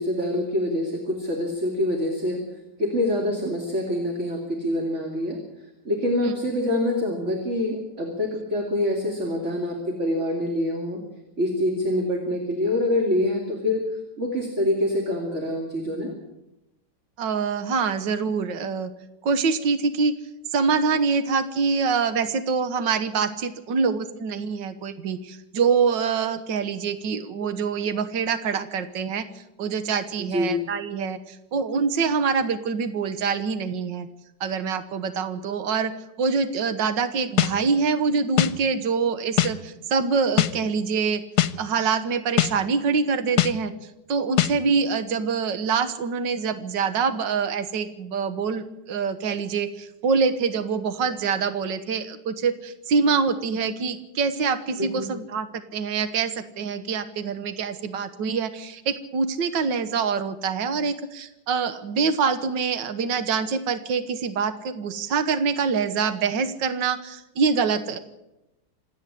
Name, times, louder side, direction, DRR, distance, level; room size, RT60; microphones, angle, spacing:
voice 1, 0.0-2.4 2.8-5.4 5.8-11.0 11.4-16.1 30.2-30.6 54.8-55.1, left 1 dB, 40° right, 1 dB, 3.1 m, -25 dB
voice 2, 17.2-18.9 19.2-20.1 20.5-34.1 34.4-35.9 36.2-41.2 41.6-55.5 55.7-68.0, right 5 dB, 80° right, 11 dB, 1.9 m, -25 dB
sound 1, 37.4-37.5 38.4-38.5 39.4-39.5 40.4-40.5 41.4-41.5 42.4-42.5 43.4-43.5 44.4-44.5, left 13 dB, 65° left, 1.3 m, -20 dB
26.5 x 9.8 x 9.9 m, 0.92 s
omnidirectional pair, 2.0 m